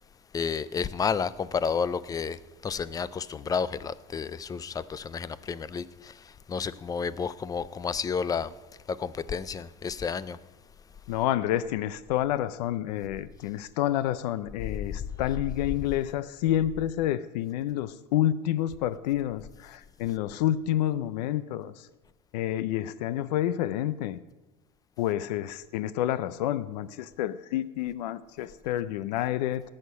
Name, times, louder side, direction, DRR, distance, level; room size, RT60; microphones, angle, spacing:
voice 1, 0.3-6.1 6.5-8.5 8.9-10.4 15.7-16.1, left 6 dB, 20° left, 0.4 m, -31 dB
voice 2, 11.1-21.9 22.3-24.2 25.0-29.6, left 12 dB, 90° left, 0.5 m, -29 dB
17.5 x 6.6 x 5.5 m
supercardioid pair, 125°, 21 cm